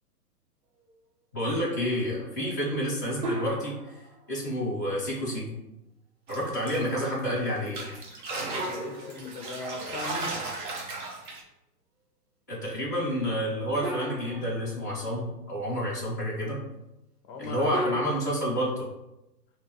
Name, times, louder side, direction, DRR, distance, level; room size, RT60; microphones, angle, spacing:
voice 1, 1.3-4.0 4.3-5.5 6.3-7.9 12.5-16.6 17.4-18.9, equal, 15° left, -9 dB, 0.3 m, -29 dB
sound 1, 3.2-4.3 8.6-10.1 13.8-15.0 17.7-18.2, right 1 dB, 80° right, 1.1 m, -35 dB
sound 2, 6.3-7.3 7.7-11.4, right 3 dB, 30° right, 0.7 m, -36 dB
voice 2, 8.5-10.5 17.2-18.1, left 3 dB, 35° left, 4 dB, 0.7 m, -39 dB
3.5 x 2.9 x 4.5 m, 0.91 s
figure-of-eight pair, 125°, 48 cm